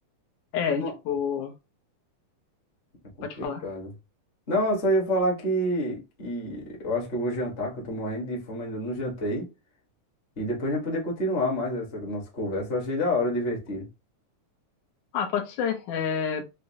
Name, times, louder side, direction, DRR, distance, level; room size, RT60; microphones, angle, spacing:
voice 1, 0.5-1.5 3.2-3.6 15.1-16.4, left 7 dB, 80° left, 2.0 m, -28 dB
voice 2, 3.2-3.9 4.5-9.5 10.4-13.9, equal, 45° left, 0.7 m, -28 dB
5.6 x 2.0 x 2.7 m
omnidirectional pair, 3.6 m